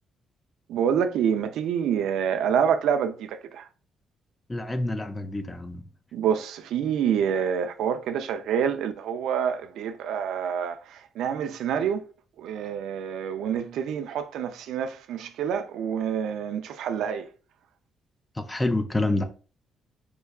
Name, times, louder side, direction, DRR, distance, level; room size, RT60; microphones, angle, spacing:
voice 1, 0.7-3.7 6.1-12.0 12.4-17.3, right 8 dB, 80° right, 0.4 m, -27 dB
voice 2, 4.5-5.8 18.4-19.2, left 2 dB, 15° left, 0.4 m, -27 dB
4.5 x 2.2 x 2.3 m
cardioid pair, 90°, 0 cm